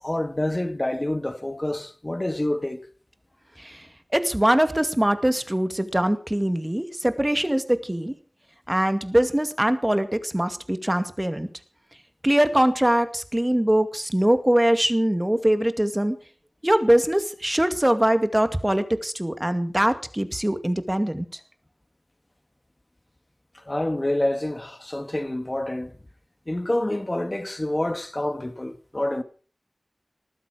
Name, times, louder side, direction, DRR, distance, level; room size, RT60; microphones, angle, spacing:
voice 1, 0.0-2.9 23.7-25.9 26.5-29.2, left 1 dB, 30° left, 2.0 m, -27 dB
voice 2, 4.1-8.1 8.7-11.5 12.2-16.2 16.6-21.4, right 1 dB, 15° right, 2.2 m, -22 dB
20.0 x 14.0 x 5.0 m
wide cardioid pair, 60°, 0 cm